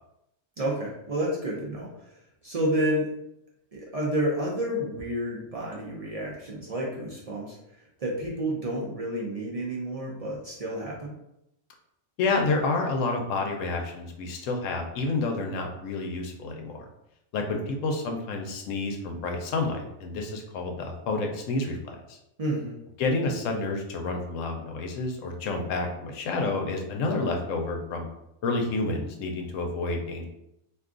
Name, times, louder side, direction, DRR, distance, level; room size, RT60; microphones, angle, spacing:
voice 1, 0.6-2.1 2.4-3.1 3.7-7.6 8.0-11.1 22.4-22.8, right 1 dB, 55° right, -4 dB, 0.4 m, -30 dB
voice 2, 12.2-16.9 17.3-22.2 23.0-28.1 28.4-30.3, left 3 dB, 80° left, 2 dB, 1.0 m, -29 dB
2.6 x 2.3 x 3.6 m, 0.83 s
omnidirectional pair, 1.3 m